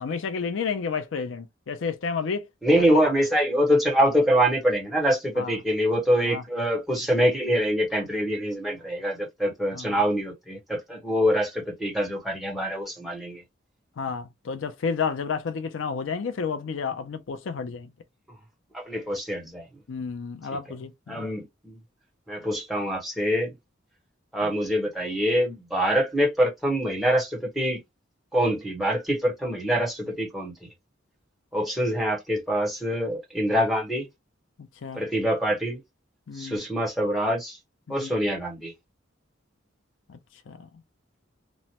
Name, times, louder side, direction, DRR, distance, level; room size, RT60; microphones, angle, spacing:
voice 1, 0.0-2.5 2.8-2.9 5.4-5.6 6.2-6.4 9.7-10.0 14.0-17.9 19.9-21.3 24.4-24.5 34.8-35.0 36.3-36.6 37.9-38.1 40.1-40.2 40.5-40.7, left 5 dB, 80° left, 0.5 m, -31 dB
voice 2, 2.6-13.4 18.7-19.6 21.1-21.8 22.3-23.5 24.3-27.8 28.3-30.5 31.5-34.1 34.9-35.8 36.3-37.6 37.9-38.7, equal, ahead, 1.1 m, -25 dB
3.0 x 2.1 x 2.8 m
head